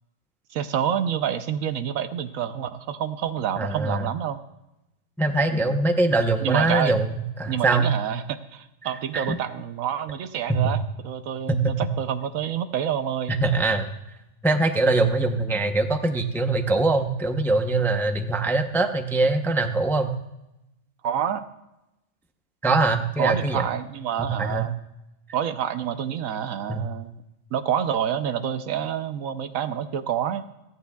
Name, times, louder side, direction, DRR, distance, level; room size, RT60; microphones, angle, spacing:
voice 1, 0.5-4.4 5.5-5.8 6.4-6.9 7.5-13.3 21.0-21.4 23.2-24.7 25.3-27.1 27.5-30.4, right 9 dB, 80° right, 10 dB, 1.1 m, -28 dB
voice 2, 3.6-4.0 5.2-7.9 9.1-9.4 10.5-10.7 11.5-11.8 13.4-13.9 14.4-20.1 22.6-23.6 24.4-24.7 26.7-26.8, right 2 dB, ahead, 6 dB, 0.5 m, -22 dB
29.0 x 9.7 x 2.3 m, 0.91 s
omnidirectional pair, 1.4 m